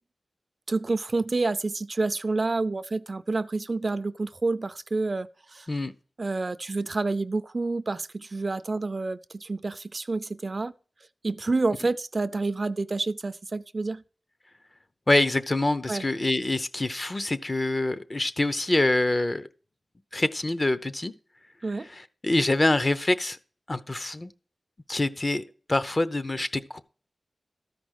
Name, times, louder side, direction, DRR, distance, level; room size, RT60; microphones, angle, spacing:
voice 1, 0.7-5.7 6.2-10.7 11.2-14.0 15.9-16.0 21.6-21.9, right 3 dB, 45° right, 0.4 m, -28 dB
voice 2, 15.1-19.5 20.1-21.1 21.9-23.4 23.7-24.3 24.9-26.8, left 2 dB, 30° left, 0.7 m, -25 dB
13.0 x 5.1 x 6.3 m
wide cardioid pair, 80°, 0 cm